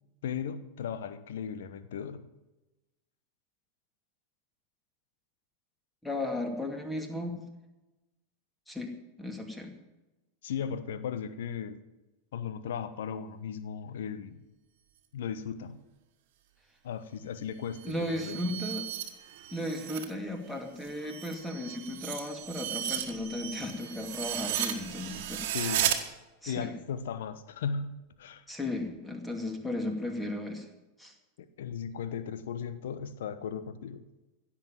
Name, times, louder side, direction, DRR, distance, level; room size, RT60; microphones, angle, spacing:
voice 1, 0.2-2.3 10.4-11.8 12.3-14.4 15.1-15.8 16.8-18.4 25.5-25.9 26.5-28.4 31.6-34.0, left 7 dB, 60° left, 13 dB, 1.0 m, -36 dB
voice 2, 6.0-7.5 8.7-8.9 9.2-9.7 17.8-18.9 19.5-25.8 26.4-26.7 28.5-30.7 31.0-31.1, left 1 dB, 5° left, 4 dB, 2.4 m, -35 dB
sound 1, 17.7-20.1 20.5-26.0, right 11 dB, 50° right, 1.6 m, -35 dB
16.5 x 7.4 x 9.1 m, 1.1 s
figure-of-eight pair, 90°, 0 cm